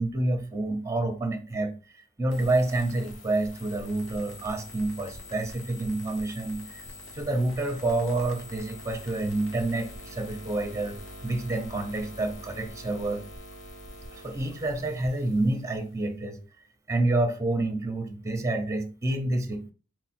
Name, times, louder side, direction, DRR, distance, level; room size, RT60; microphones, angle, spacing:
voice 1, 0.0-1.7 2.2-6.9 7.1-13.2 14.1-16.4 16.9-19.7, right 2 dB, 15° right, 0.6 m, -28 dB
sound 1, 2.3-16.1, left 1 dB, 70° left, 1.0 m, -44 dB
4.5 x 2.2 x 4.2 m
head